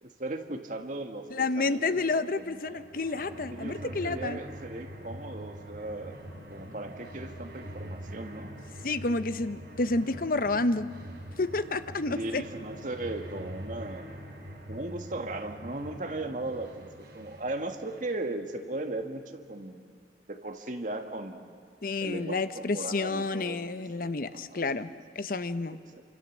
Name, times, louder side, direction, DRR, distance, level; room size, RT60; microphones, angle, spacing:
voice 1, 0.0-2.9 3.5-6.2 6.5-8.5 12.1-14.1 14.7-20.0 20.3-21.5 22.0-25.0 25.9-26.0, right 2 dB, 45° right, 5 dB, 1.7 m, -37 dB
voice 2, 1.3-4.4 8.8-10.9 11.4-12.4 21.8-25.8, left 3 dB, 50° left, 12 dB, 0.8 m, -30 dB
sound 1, 2.4-18.2, equal, 65° right, 3.8 m, -44 dB
27.5 x 25.0 x 7.3 m, 2.1 s
head